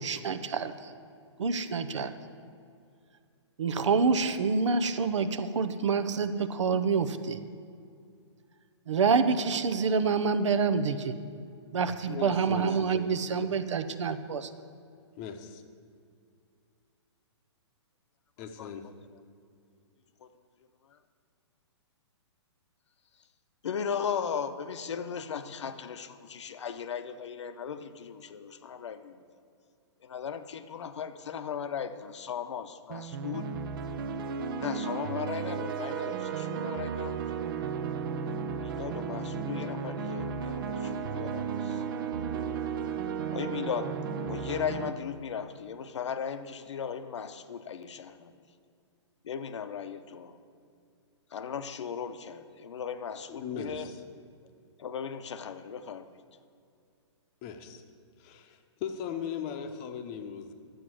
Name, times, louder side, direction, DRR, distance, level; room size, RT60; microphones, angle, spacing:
voice 1, 0.0-0.9 1.4-2.1 3.6-7.4 8.9-11.1 11.7-14.5, right 5 dB, 80° right, 11 dB, 0.8 m, -27 dB
voice 2, 12.1-13.1 15.2-15.6 18.4-18.9 53.3-54.0 57.4-57.8 58.2-60.5, left 7 dB, 30° left, 7 dB, 0.8 m, -38 dB
voice 3, 23.6-29.2 30.0-33.5 34.4-37.3 38.6-41.8 43.3-48.3 49.2-50.4 51.3-53.9 54.8-56.2, left 7 dB, 70° left, 10 dB, 0.8 m, -37 dB
sound 1, 32.9-44.9, right 6 dB, 45° right, 0.7 m, -34 dB
11.5 x 8.0 x 6.2 m, 2.4 s
hypercardioid pair, 150°, 15 cm